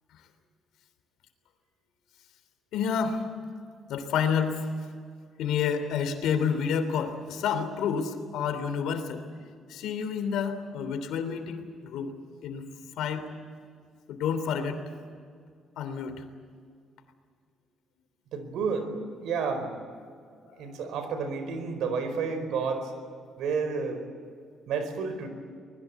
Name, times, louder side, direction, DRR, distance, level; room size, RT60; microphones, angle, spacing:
voice 1, 2.7-3.2 3.9-4.7 5.4-9.2 9.7-12.1 12.4-12.7 13.0-13.3 14.1-14.8 15.8-16.2 20.5-20.7, left 7 dB, 85° left, 9 dB, 3.1 m, -29 dB
voice 2, 18.3-19.8 20.6-22.9 23.4-24.0 24.7-25.3, right 5 dB, 80° right, 8 dB, 4.7 m, -30 dB
24.5 x 21.0 x 8.3 m, 2.2 s
cardioid pair, 135°, 0 cm